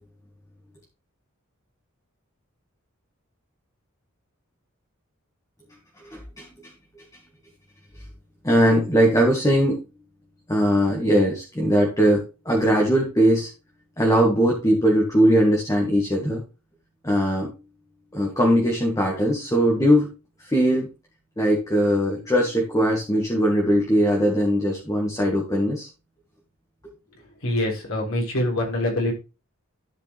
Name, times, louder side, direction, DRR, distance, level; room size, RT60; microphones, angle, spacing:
voice 1, 6.0-6.7 8.4-9.8 10.5-13.5 14.0-16.4 17.0-17.5 18.1-20.1 20.4-20.9 21.4-25.9, equal, 15° left, -1 dB, 1.7 m, -20 dB
voice 2, 27.4-29.1, left 1 dB, 65° left, -2 dB, 3.8 m, -24 dB
12.5 x 5.1 x 3.4 m, 0.31 s
head